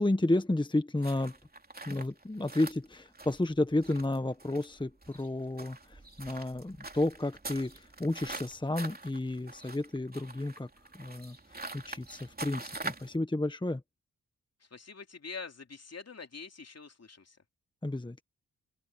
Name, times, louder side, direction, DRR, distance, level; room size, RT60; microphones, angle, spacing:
voice 1, 0.0-1.4 1.9-10.7 10.9-13.8 17.8-18.2, left 2 dB, 15° left, 1.3 m, -32 dB
sound 1, 1.0-13.2, right 2 dB, 25° right, 3.2 m, -45 dB
voice 2, 14.6-17.4, left 5 dB, 45° left, 3.1 m, -45 dB
open air
supercardioid pair, 45°, 36 cm